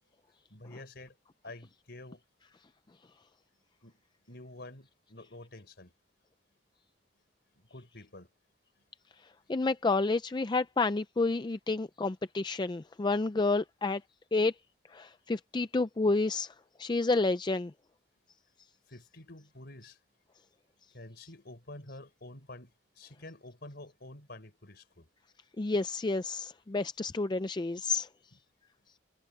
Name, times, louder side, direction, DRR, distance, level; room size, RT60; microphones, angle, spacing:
voice 1, 0.5-1.2 1.4-2.2 3.8-4.0 4.3-5.9 7.5-8.3 18.9-20.0 20.9-25.1 28.3-28.4, left 2 dB, 55° left, 4.1 m, -49 dB
voice 2, 9.5-14.0 14.3-14.5 14.9-16.5 16.8-17.7 25.6-28.1, left 3 dB, 25° left, 0.4 m, -29 dB
head